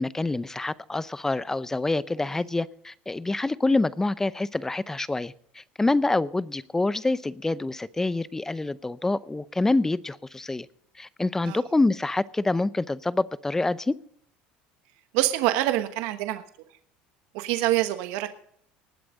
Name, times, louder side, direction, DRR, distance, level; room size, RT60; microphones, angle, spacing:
voice 1, 0.0-10.7 11.0-13.9, left 2 dB, 10° left, 18 dB, 0.6 m, -26 dB
voice 2, 15.1-16.4 17.3-18.3, right 15 dB, 80° right, 8 dB, 1.2 m, -25 dB
19.5 x 8.0 x 5.1 m, 0.67 s
supercardioid pair, 120°, 4 cm